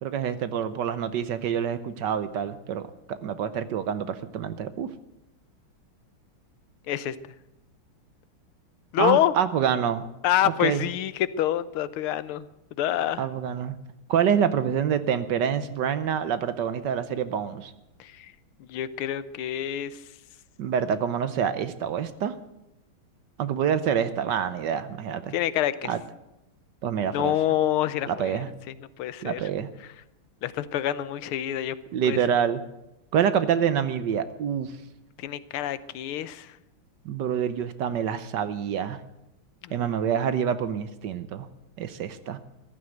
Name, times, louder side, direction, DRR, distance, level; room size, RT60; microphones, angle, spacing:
voice 1, 0.0-4.9 9.0-10.1 10.6-10.9 13.2-13.8 14.1-17.7 20.6-22.3 23.4-25.4 25.8-26.0 26.8-27.3 28.1-28.5 29.2-29.7 31.9-32.6 33.1-34.7 37.0-39.0 39.7-41.5 41.8-42.4, right 8 dB, 65° right, 13 dB, 1.3 m, -26 dB
voice 2, 8.9-9.3 10.2-12.5 12.8-13.3 18.0-18.3 18.6-20.0 25.3-25.9 27.1-28.4 29.0-29.4 30.4-31.7 32.1-32.2 35.2-36.5 39.6-39.9, left 12 dB, 90° left, 16 dB, 1.7 m, -27 dB
15.0 x 11.5 x 7.9 m, 0.90 s
omnidirectional pair, 2.3 m